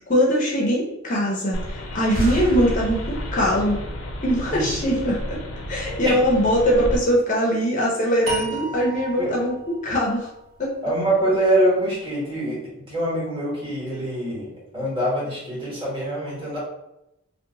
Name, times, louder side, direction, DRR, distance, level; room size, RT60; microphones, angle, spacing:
voice 1, 0.1-3.8 4.2-5.4 5.7-10.3 10.6-10.7, equal, 40° left, -3 dB, 0.6 m, -22 dB
sound 1, 1.5-7.0, left 1 dB, 90° left, 0.6 m, -33 dB
sound 2, 2.1-5.6, equal, 45° right, 1.2 m, -31 dB
sound 3, 8.3-11.5, right 2 dB, 80° right, 0.9 m, -34 dB
voice 2, 10.8-12.6 12.9-16.6, right 1 dB, 25° right, -6 dB, 1.4 m, -24 dB
2.7 x 2.2 x 3.7 m, 0.86 s
head